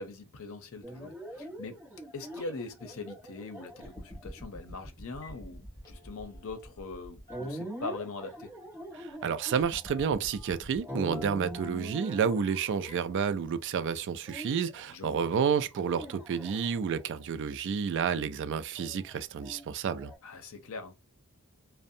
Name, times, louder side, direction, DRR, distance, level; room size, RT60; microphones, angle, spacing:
voice 1, 0.0-1.8 2.1-8.5 14.9-15.3 20.2-21.0, left 3 dB, 65° left, 0.6 m, -42 dB
sound 1, 0.8-13.5 14.3-14.9 15.7-17.2 18.8-20.2, right 1 dB, 10° right, 1.1 m, -43 dB
Telephone, 4.6-4.8 5.1-5.4 5.7-7.0 7.3-8.2 9.4-9.6 9.9-10.6 11.1-13.1 13.5-13.6 14.2-14.3, left 3 dB, 15° left, 0.9 m, -53 dB
voice 2, 8.9-20.1, right 7 dB, 55° right, 0.3 m, -30 dB
2.6 x 2.1 x 2.6 m
head